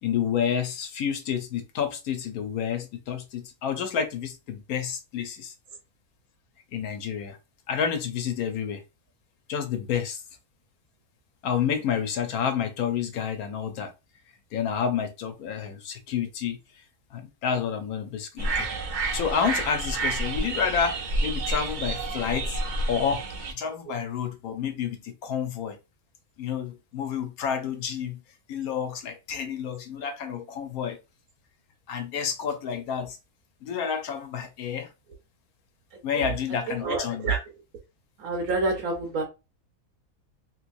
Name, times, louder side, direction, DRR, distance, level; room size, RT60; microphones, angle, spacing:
voice 1, 0.0-5.5 6.7-7.4 7.7-8.8 9.5-10.2 11.4-13.9 14.5-16.6 17.1-18.7 19.1-22.6 22.9-23.2 23.5-25.8 26.4-28.2 28.5-31.0 31.9-33.2 33.6-34.9 36.0-37.3, left 7 dB, 80° left, 1.2 m, -29 dB
sound 1, 18.4-23.5, right 2 dB, 60° right, 0.5 m, -29 dB
voice 2, 36.7-37.4 38.2-39.2, right 3 dB, 80° right, 1.3 m, -27 dB
3.3 x 3.1 x 2.5 m
omnidirectional pair, 1.5 m